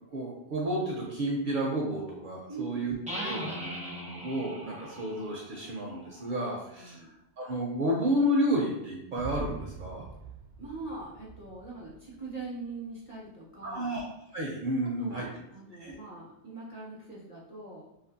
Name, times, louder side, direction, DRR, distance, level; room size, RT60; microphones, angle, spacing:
voice 1, 0.1-7.0 7.4-10.0 13.6-14.0 14.3-15.3 15.8-15.9, equal, 60° right, -2 dB, 0.6 m, -31 dB
voice 2, 2.5-2.9 6.8-7.1 10.6-13.9 14.8-17.8, right 3 dB, 35° left, -6 dB, 0.7 m, -42 dB
sound 1, 3.1-6.7, equal, 10° right, 0.4 m, -40 dB
sound 2, 9.2-12.5, right 2 dB, 85° right, 0.9 m, -44 dB
2.5 x 2.5 x 2.6 m, 0.84 s
omnidirectional pair, 1.1 m